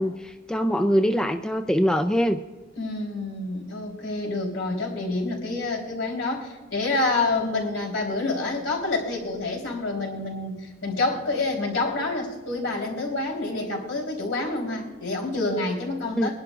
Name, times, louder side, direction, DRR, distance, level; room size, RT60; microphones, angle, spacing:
voice 1, 0.0-2.4 16.2-16.3, equal, 5° left, 7 dB, 0.4 m, -23 dB
voice 2, 2.8-16.3, left 2 dB, 70° left, -1 dB, 3.9 m, -28 dB
22.0 x 11.0 x 2.5 m, 1.2 s
head